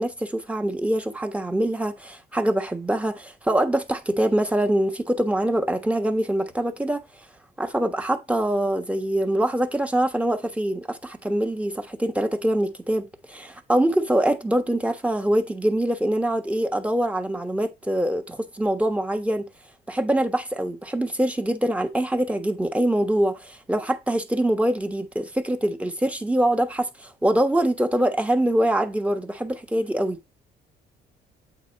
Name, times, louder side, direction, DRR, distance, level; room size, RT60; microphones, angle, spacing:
voice 1, 0.0-7.0 7.6-19.5 19.9-30.2, right 1 dB, 10° right, 1.3 m, -24 dB
8.4 x 4.3 x 4.0 m
cardioid pair, 110°, 17 cm